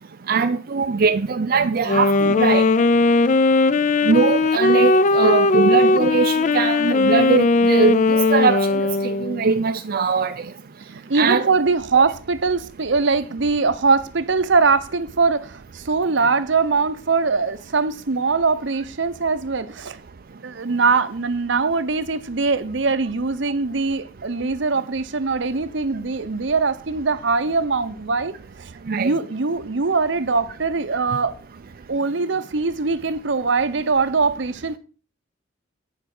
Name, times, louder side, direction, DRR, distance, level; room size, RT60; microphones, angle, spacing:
voice 1, 0.3-2.6 4.0-10.5 11.1-11.5 28.9-29.1, right 5 dB, 50° right, 0.5 m, -21 dB
Wind instrument woodwind instrument, 1.8-9.5, left 3 dB, 40° left, 0.4 m, -18 dB
voice 2, 11.1-20.0 20.4-28.3 29.0-31.3 31.9-34.8, right 4 dB, 70° right, 0.8 m, -22 dB
9.3 x 5.0 x 6.1 m
head